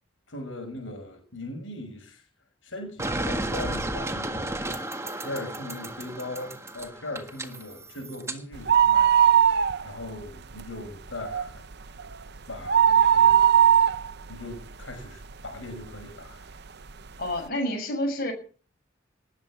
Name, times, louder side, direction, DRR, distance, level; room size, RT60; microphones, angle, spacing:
voice 1, 0.3-2.3 2.6-4.6 5.2-9.3 9.8-11.7 12.5-13.5 14.3-16.5, left 1 dB, 75° left, 6.0 m, -39 dB
sound 1, 3.0-8.4, right 1 dB, 15° right, 1.6 m, -33 dB
sound 2, 8.5-10.2 10.5-10.6 11.1-15.5 16.0-16.1 16.9-17.0 17.2-17.3, right 9 dB, 55° right, 0.8 m, -19 dB
voice 2, 17.2-18.3, left 1 dB, 50° left, 7.0 m, -28 dB
19.5 x 8.2 x 7.5 m
head